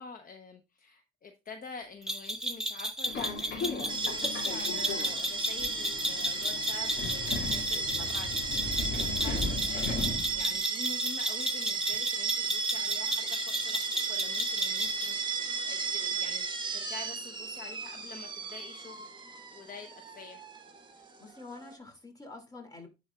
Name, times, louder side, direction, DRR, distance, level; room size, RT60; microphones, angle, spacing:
voice 1, 0.0-20.4, left 4 dB, 45° left, 5 dB, 1.0 m, -47 dB
sound 1, 2.1-15.1, right 1 dB, 5° right, 1.2 m, -34 dB
Subway metro underground, 3.1-10.6, left 3 dB, 65° left, 2.3 m, -37 dB
sound 2, 3.9-21.7, right 5 dB, 25° right, 1.3 m, -34 dB
voice 2, 7.6-8.1 21.0-22.9, left 3 dB, 20° left, 3 dB, 2.8 m, -48 dB
10.0 x 4.3 x 2.4 m, 0.26 s
cardioid pair, 90°, 20 cm